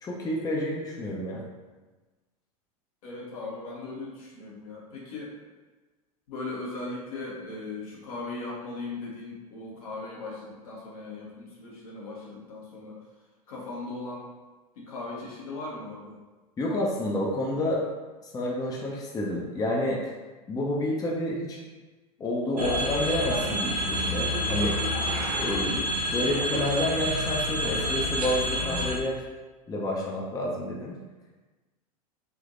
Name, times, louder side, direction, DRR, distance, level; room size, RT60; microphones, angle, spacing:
voice 1, 0.0-1.4 16.6-17.8 18.3-20.0 20.5-21.6 22.2-24.8 25.4-29.3 29.7-31.0, left 1 dB, 20° left, -3 dB, 0.6 m, -29 dB
voice 2, 3.0-5.3 6.3-13.0 13.5-14.3 14.8-16.2, left 3 dB, 70° left, -4 dB, 1.1 m, -38 dB
sound 1, 22.6-29.0, equal, 85° right, 0.5 m, -28 dB
3.5 x 2.6 x 2.5 m, 1.3 s
hypercardioid pair, 85°, 19 cm